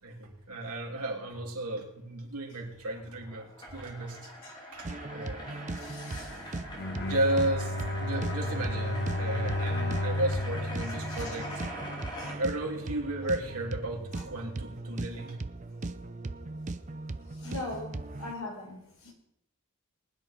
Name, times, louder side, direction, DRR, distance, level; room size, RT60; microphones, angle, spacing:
voice 1, 0.0-4.3 4.7-4.9 5.1-5.7 7.0-11.6 12.4-15.4, right 1 dB, 85° right, 3.2 m, -34 dB
sound 1, 2.9-12.4, left 1 dB, 20° left, 2.6 m, -43 dB
sound 2, 4.8-18.3, right 2 dB, 35° right, 0.5 m, -39 dB
voice 2, 5.8-6.4 11.1-11.6 12.2-12.4 14.1-14.2 17.4-19.1, left 2 dB, 70° left, 4.4 m, -41 dB
Bowed string instrument, 6.7-12.0, left 1 dB, 50° left, 1.7 m, -33 dB
20.0 x 10.5 x 4.5 m
head